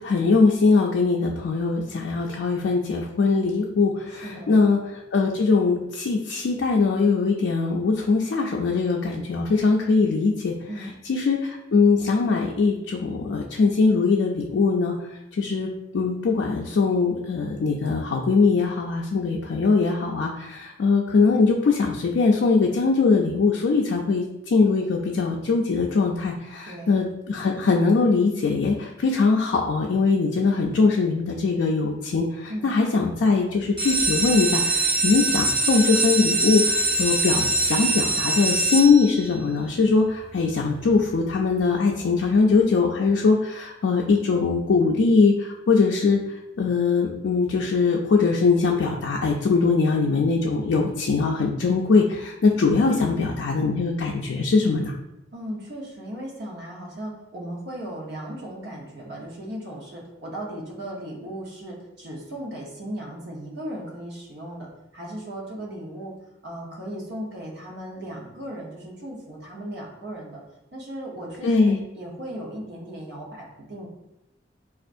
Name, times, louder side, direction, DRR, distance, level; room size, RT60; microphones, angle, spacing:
voice 1, 0.0-4.8 5.1-10.5 11.1-14.9 15.4-15.7 15.9-46.2 46.6-54.9 71.4-71.8, left 4 dB, 85° left, 0 dB, 0.4 m, -21 dB
voice 2, 4.1-4.6 10.7-10.9 26.6-27.1 32.5-32.7 52.9-53.4 55.3-64.7 64.9-66.1 66.4-70.4 70.7-73.9, right 1 dB, 65° right, -2 dB, 0.9 m, -36 dB
sound 1, 33.6-39.4 40.0-40.5 40.9-41.0 41.2-41.3 41.7-41.9, right 2 dB, 25° right, 1.3 m, -23 dB
4.3 x 2.4 x 2.5 m, 0.88 s
head